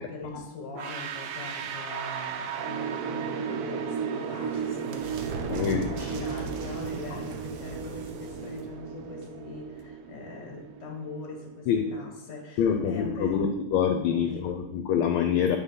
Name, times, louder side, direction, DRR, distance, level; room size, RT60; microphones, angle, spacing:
voice 1, 0.0-13.6 14.1-14.5, left 3 dB, 55° left, 0 dB, 2.2 m, -41 dB
sound 1, 0.8-11.6, right 7 dB, 80° right, 0.8 m, -35 dB
sound 2, 3.8-10.2, right 3 dB, 65° right, 1.2 m, -40 dB
voice 2, 5.5-5.8 11.7-11.8 12.6-15.6, left 8 dB, 80° left, 4 dB, 1.5 m, -25 dB
8.8 x 3.9 x 5.6 m, 0.92 s
omnidirectional pair, 2.4 m